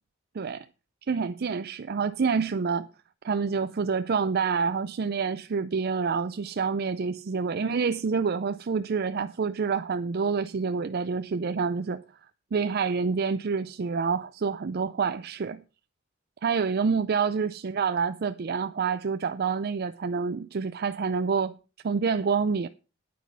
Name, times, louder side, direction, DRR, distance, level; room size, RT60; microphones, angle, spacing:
voice 1, 0.3-0.7 1.1-2.9 3.2-12.0 12.5-15.6 16.4-21.6 21.8-22.7, right 5 dB, 50° right, 0.5 m, -27 dB
9.4 x 9.3 x 5.4 m
head